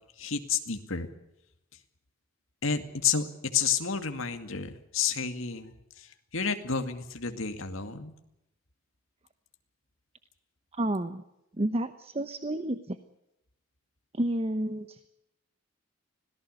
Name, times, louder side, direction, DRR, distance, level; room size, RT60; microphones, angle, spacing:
voice 1, 0.2-1.1 2.6-8.1, left 6 dB, 75° left, 7 dB, 2.3 m, -31 dB
voice 2, 10.7-11.2 11.6-13.0 14.1-15.1, right 1 dB, 30° right, 11 dB, 1.0 m, -30 dB
25.5 x 18.0 x 6.7 m, 0.86 s
head